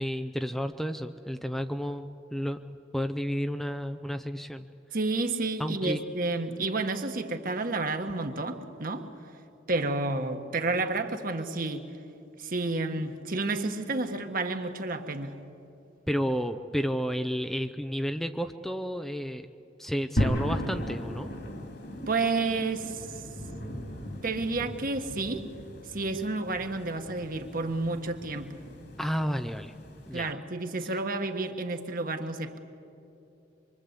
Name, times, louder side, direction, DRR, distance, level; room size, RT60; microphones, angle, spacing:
voice 1, 0.0-2.6 2.9-4.7 5.6-6.0 16.1-19.5 19.8-21.3 29.0-29.7 30.1-30.3, equal, ahead, 7 dB, 0.5 m, -31 dB
voice 2, 4.9-9.1 9.7-11.9 12.4-15.3 22.1-23.1 24.2-25.5 25.9-28.6 30.1-32.6, right 3 dB, 50° right, 6 dB, 1.6 m, -30 dB
sound 1, 20.2-30.3, equal, 60° left, 2.9 m, -36 dB
25.0 x 23.5 x 8.3 m, 2.7 s
head